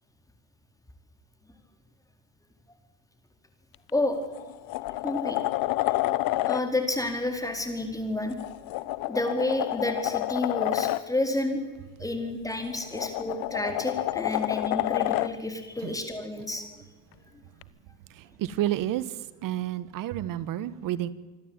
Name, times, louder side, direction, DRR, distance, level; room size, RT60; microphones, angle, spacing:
sound 1, 3.7-3.9 4.3-6.6 8.3-11.0 12.5-15.3 17.6-17.7, left 17 dB, 75° left, 1.0 m, -29 dB
voice 1, 3.9-4.2 5.0-5.4 6.4-8.4 9.1-11.6 12.0-16.7, left 2 dB, 10° left, 5 dB, 4.5 m, -30 dB
voice 2, 18.1-21.1, right 13 dB, 70° right, 17 dB, 1.4 m, -30 dB
26.0 x 12.5 x 9.0 m, 1.4 s
supercardioid pair, 90°, 35 cm